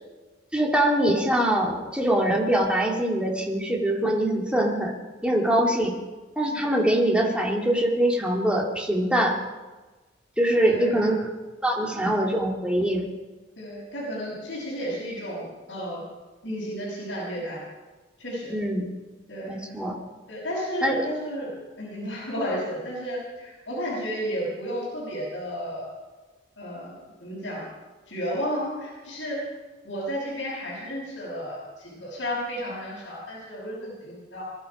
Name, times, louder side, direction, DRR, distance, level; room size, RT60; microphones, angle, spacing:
voice 1, 0.5-4.9 5.2-5.9 6.4-9.4 10.4-11.3 11.6-13.1 18.5-18.8 19.5-19.9 20.8-20.9, right 1 dB, 5° right, 0 dB, 2.2 m, -23 dB
voice 2, 10.6-10.9 13.6-16.0 16.4-17.6 18.2-18.6 19.3-19.7 20.3-21.5 21.8-25.9 26.6-27.7 28.1-29.4 29.8-34.4, equal, 65° left, -7 dB, 5.9 m, -32 dB
22.0 x 12.5 x 5.3 m, 1.3 s
head